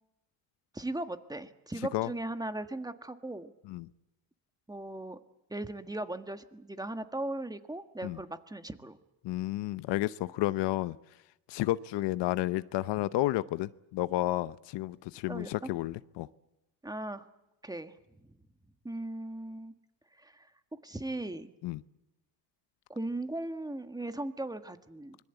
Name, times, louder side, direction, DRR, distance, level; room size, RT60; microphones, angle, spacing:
voice 1, 0.7-3.5 4.7-5.2 5.5-9.0 15.3-15.7 16.8-17.3 17.6-17.9 18.8-19.7 20.2-20.5 20.8-21.5 22.9-25.2, right 1 dB, 10° right, 1.6 m, -38 dB
voice 2, 9.2-11.0 11.5-16.3 21.6-21.8, left 16 dB, 75° left, 0.8 m, -31 dB
25.5 x 21.5 x 8.1 m
cardioid pair, 100°, 43 cm